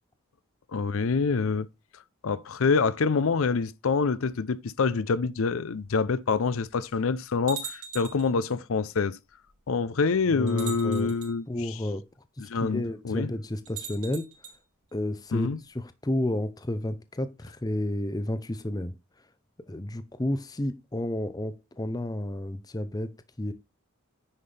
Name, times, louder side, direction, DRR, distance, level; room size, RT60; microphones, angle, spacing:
voice 1, 0.7-1.7 2.2-9.2 9.7-11.4 12.5-13.3 15.3-15.6, left 4 dB, 70° left, 0.5 m, -26 dB
sound 1, 5.8-5.9 6.7-6.8 7.5-8.3 9.5-9.6 10.5-11.3 13.7-14.6, right 7 dB, 90° right, 3.1 m, -40 dB
voice 2, 10.3-11.1 11.5-12.0 12.4-14.3 14.9-18.9 19.7-23.5, left 1 dB, 15° left, 0.6 m, -31 dB
9.9 x 5.6 x 3.3 m
head